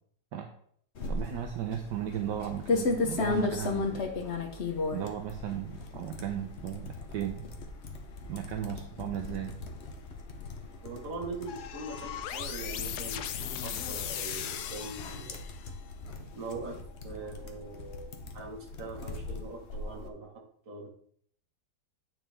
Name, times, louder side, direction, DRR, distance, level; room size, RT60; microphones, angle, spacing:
sound 1, 1.0-20.1, left 3 dB, 45° left, 1.1 m, -37 dB
voice 1, 1.1-4.1 4.9-7.5 8.3-9.6, right 10 dB, 75° right, 5 dB, 1.4 m, -36 dB
voice 2, 10.8-15.4 16.3-20.9, right 3 dB, 50° right, 1 dB, 2.0 m, -42 dB
Robot abstraction, 11.5-15.8, left 10 dB, 70° left, 1.1 m, -38 dB
9.2 x 6.1 x 3.5 m, 0.63 s
omnidirectional pair, 1.9 m